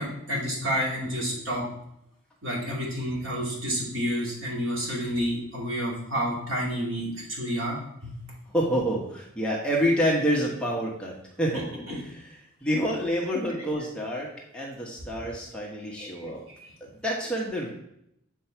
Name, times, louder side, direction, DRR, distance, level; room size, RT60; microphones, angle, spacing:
voice 1, 0.0-1.6 2.4-7.8 8.0-8.2 11.9-12.0 16.0-16.1, equal, 65° right, -4 dB, 2.6 m, -29 dB
voice 2, 8.5-11.6 11.9-16.4 17.0-17.7, equal, 5° left, -3 dB, 1.0 m, -28 dB
7.6 x 4.6 x 4.4 m, 0.78 s
head